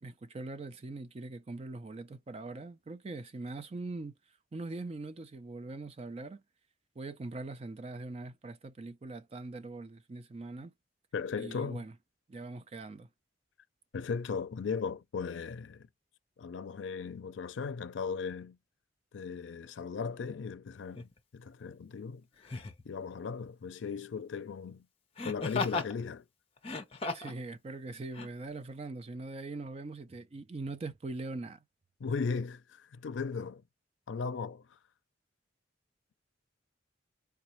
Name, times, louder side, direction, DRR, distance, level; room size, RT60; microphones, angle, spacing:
voice 1, 0.0-4.2 4.5-6.4 7.0-10.7 11.4-11.9 12.3-13.1 27.1-31.6, right 2 dB, 35° right, 0.4 m, -42 dB
voice 2, 11.1-11.8 13.9-15.9 16.4-18.6 19.1-22.2 22.8-24.9 25.2-26.2 32.0-33.6 34.1-34.8, left 5 dB, 85° left, 0.4 m, -37 dB
Laughter, 21.0-21.1 22.4-22.8 25.2-25.9 26.6-27.4 28.1-28.3, left 3 dB, 30° left, 0.6 m, -35 dB
4.0 x 2.2 x 3.0 m
head